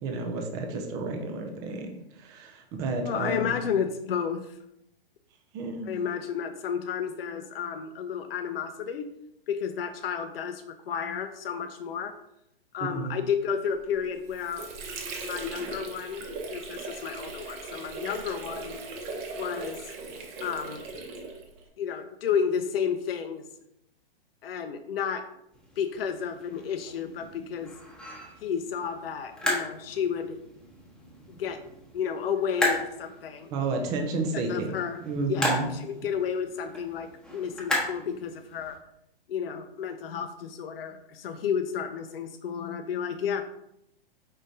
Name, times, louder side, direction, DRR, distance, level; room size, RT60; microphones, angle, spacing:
voice 1, 0.0-1.9 2.2-3.5 5.5-5.9 12.8-13.1 33.5-34.7 35.0-35.7, right 3 dB, 15° right, 4 dB, 0.3 m, -31 dB
voice 2, 3.0-4.6 5.8-9.0 9.5-12.1 12.7-14.7 15.2-18.8 19.4-19.8 20.4-20.8 21.8-23.4 24.4-25.2 25.8-27.7 28.4-30.4 31.4-31.6 31.9-33.5 34.3-35.0 35.3-38.8 39.3-43.4, left 7 dB, 75° left, 7 dB, 0.5 m, -31 dB
Water / Sink (filling or washing), 14.0-21.7, right 3 dB, 30° right, 0.8 m, -38 dB
sound 1, 25.5-38.8, left 1 dB, ahead, 0.9 m, -35 dB
5.0 x 3.7 x 2.7 m, 0.80 s
hypercardioid pair, 140°, 29 cm